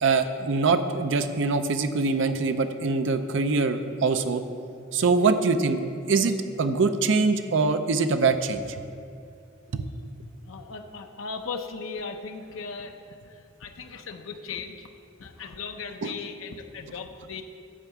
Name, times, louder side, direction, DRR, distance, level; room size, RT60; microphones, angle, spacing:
voice 1, 0.0-4.4 4.9-5.8 6.1-8.7 9.7-9.9 16.0-16.1, right 4 dB, 60° right, 9 dB, 0.5 m, -23 dB
voice 2, 10.5-14.9 15.2-17.4, left 5 dB, 75° left, 5 dB, 0.6 m, -38 dB
10.0 x 4.7 x 7.2 m, 2.4 s
head